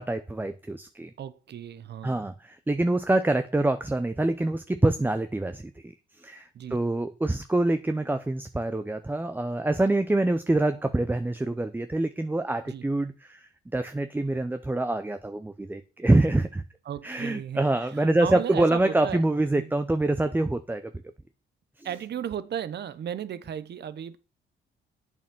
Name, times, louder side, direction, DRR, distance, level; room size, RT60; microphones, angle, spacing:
voice 1, 0.0-1.1 2.0-16.6 17.0-20.8 21.8-21.9, right 2 dB, 10° right, 0.7 m, -26 dB
voice 2, 1.2-2.3 6.5-6.8 12.7-12.8 16.8-19.3 19.6-19.7 21.8-24.2, right 9 dB, 60° right, 1.0 m, -35 dB
8.6 x 7.1 x 6.2 m
cardioid pair, 90°, 20 cm